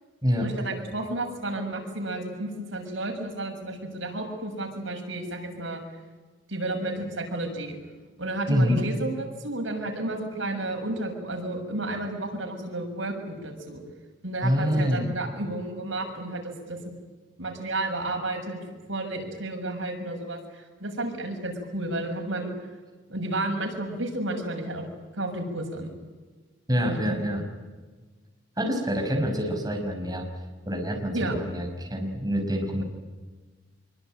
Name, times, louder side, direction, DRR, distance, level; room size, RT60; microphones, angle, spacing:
voice 1, 0.4-5.8 6.5-7.8 8.2-13.8 14.2-16.8 17.4-18.6 18.9-22.5 23.1-24.8 25.1-25.9 26.8-27.0 31.1-31.4, right 2 dB, 85° right, 2 dB, 6.9 m, -32 dB
voice 2, 8.5-8.8 14.4-15.2 26.7-27.4 28.6-30.3 30.7-32.8, equal, 20° right, 1 dB, 5.5 m, -26 dB
25.5 x 24.0 x 9.1 m, 1.3 s
head